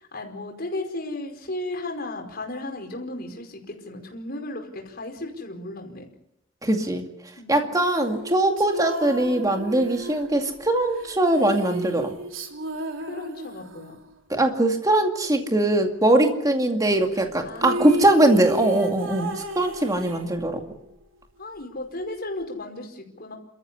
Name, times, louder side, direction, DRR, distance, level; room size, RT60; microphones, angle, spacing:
voice 1, 0.0-6.1 7.4-7.7 13.1-14.0 17.1-18.0 21.4-23.4, left 2 dB, 50° left, 2 dB, 5.0 m, -35 dB
voice 2, 6.6-7.0 7.5-12.1 14.3-20.6, right 1 dB, 15° right, 4 dB, 2.3 m, -21 dB
sound 1, 7.8-14.0 17.3-17.4 17.6-20.8, right 2 dB, 75° right, 3.1 m, -33 dB
28.5 x 14.0 x 9.9 m, 0.80 s
head